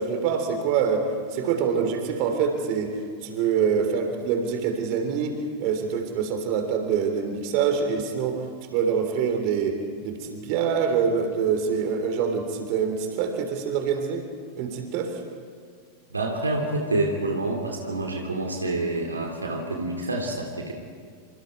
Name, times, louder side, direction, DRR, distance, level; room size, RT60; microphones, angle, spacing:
voice 1, 0.0-8.5 8.7-9.8 10.0-14.3 14.6-15.2, right 6 dB, 45° right, 5 dB, 3.4 m, -25 dB
voice 2, 16.1-20.7, right 2 dB, 80° right, 1 dB, 2.8 m, -27 dB
27.5 x 26.0 x 4.6 m, 2.1 s
figure-of-eight pair, 90°, 0 cm